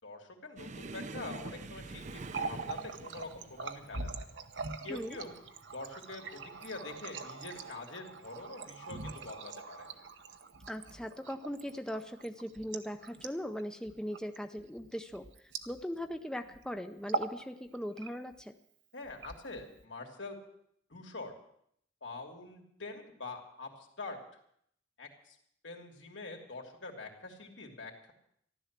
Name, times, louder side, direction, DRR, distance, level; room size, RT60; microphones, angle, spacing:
voice 1, 0.0-4.3 4.8-5.3 5.7-9.9 18.9-20.3 20.9-21.3 22.0-24.2 25.0-25.4 25.6-28.1, left 3 dB, 85° left, 1 dB, 3.0 m, -45 dB
sound 1, 0.6-7.8 8.1-8.5 8.8-9.0 9.8-10.4 11.3-11.5 12.9-13.1, right 3 dB, 40° right, 0.6 m, -47 dB
Water tap faucet, 2.1-16.2 16.4-16.7 17.0-17.4 17.7-18.4 19.0-19.8, right 4 dB, 80° right, 1.1 m, -42 dB
voice 2, 10.7-18.5, equal, 5° left, 7 dB, 0.6 m, -39 dB
14.5 x 12.0 x 7.4 m, 0.69 s
head